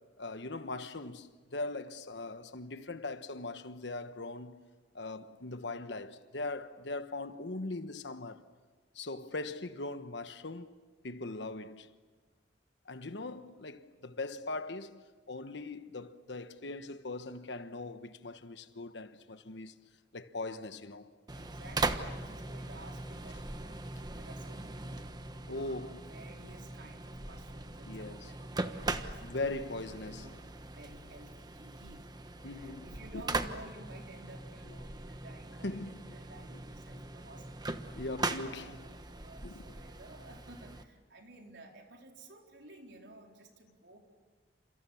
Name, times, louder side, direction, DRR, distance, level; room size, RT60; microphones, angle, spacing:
voice 1, 0.0-4.6 4.9-8.4 8.9-10.7 11.0-11.9 12.8-19.7 20.1-21.1 25.5-26.0 27.8-28.3 29.2-30.4 32.4-32.9 33.1-33.2 35.6-36.2 36.5-36.6 38.0-38.8 39.4-39.7, left 2 dB, 75° left, 1.3 m, -40 dB
sound 1, 21.3-40.8, right 2 dB, 25° right, 1.2 m, -40 dB
voice 2, 21.3-37.9 38.3-44.0, right 2 dB, 75° right, 4.3 m, -54 dB
30.0 x 28.0 x 7.2 m
head